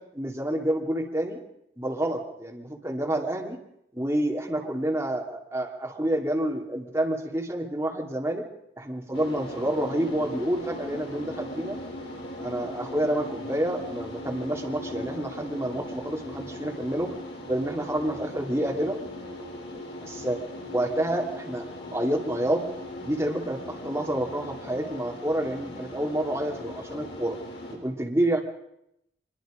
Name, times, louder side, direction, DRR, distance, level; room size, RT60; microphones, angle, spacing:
voice 1, 0.0-1.4 1.8-3.6 3.9-8.4 8.8-11.8 12.4-17.2 17.5-19.0 20.0-21.7 21.9-22.6 23.0-27.4 27.8-28.4, right 1 dB, 15° right, 0 dB, 2.7 m, -28 dB
sound 1, 9.1-27.7, left 1 dB, 65° left, 7.0 m, -39 dB
25.0 x 22.0 x 5.1 m, 0.78 s
head